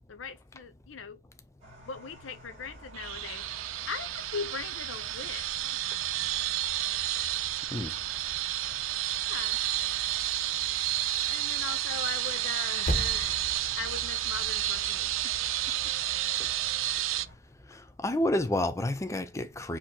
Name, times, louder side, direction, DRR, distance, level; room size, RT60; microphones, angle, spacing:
voice 1, 0.1-1.2 1.8-3.5 3.9-5.8 9.1-9.6 11.3-13.5 13.8-15.4 15.7-15.9, left 5 dB, 75° left, 0.6 m, -40 dB
sound 1, 1.6-17.3, right 1 dB, 35° right, 2.2 m, -50 dB
sound 2, 2.9-17.2, right 14 dB, 80° right, 0.4 m, -31 dB
Percussion, 12.9-17.7, equal, 45° left, 1.1 m, -39 dB
voice 2, 17.7-19.8, left 1 dB, 15° left, 0.5 m, -30 dB
4.6 x 3.0 x 3.7 m
head